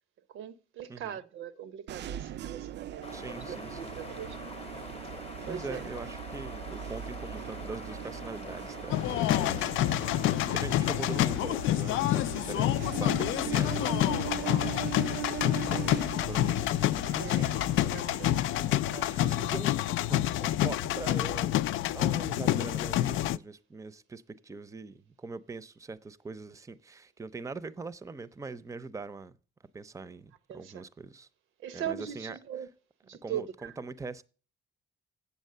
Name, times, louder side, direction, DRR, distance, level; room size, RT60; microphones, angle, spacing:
voice 1, 0.3-4.5 5.5-5.9 17.2-18.4 30.5-30.8 31.6-32.7 33.0-33.7, right 9 dB, 80° right, 0.8 m, -40 dB
sound 1, 1.9-19.3, right 12 dB, 60° right, 0.4 m, -41 dB
sound 2, 3.0-10.4, left 4 dB, 30° left, 0.8 m, -45 dB
voice 2, 3.1-3.9 5.5-12.7 13.0-14.9 15.3-17.5 18.9-29.4 29.7-31.3 31.7-32.4 33.2-34.2, right 3 dB, 15° right, 0.6 m, -42 dB
sound 3, 8.9-23.4, left 13 dB, 80° left, 0.4 m, -28 dB
8.2 x 7.1 x 6.6 m
cardioid pair, 90°, 20 cm